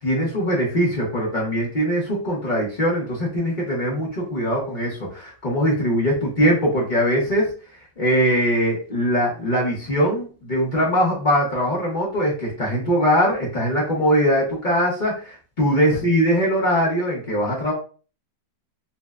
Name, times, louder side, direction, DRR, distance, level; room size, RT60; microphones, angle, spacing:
voice 1, 0.0-7.5 8.0-17.7, equal, 65° left, -4 dB, 0.4 m, -21 dB
5.5 x 2.1 x 2.3 m, 0.38 s
omnidirectional pair, 2.1 m